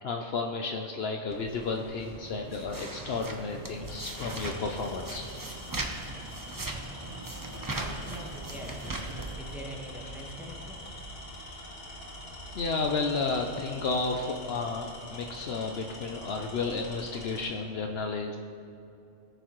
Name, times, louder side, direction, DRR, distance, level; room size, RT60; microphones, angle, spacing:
voice 1, 0.0-5.2 12.5-18.4, left 4 dB, 65° left, 3 dB, 0.8 m, -32 dB
sound 1, 1.3-9.4, right 2 dB, 20° right, 0.6 m, -39 dB
Tools, 2.7-2.9 3.8-17.6, left 1 dB, 85° left, 2.1 m, -44 dB
voice 2, 7.7-10.8, equal, ahead, -2 dB, 1.2 m, -43 dB
17.0 x 6.9 x 3.1 m, 2.6 s
omnidirectional pair, 1.2 m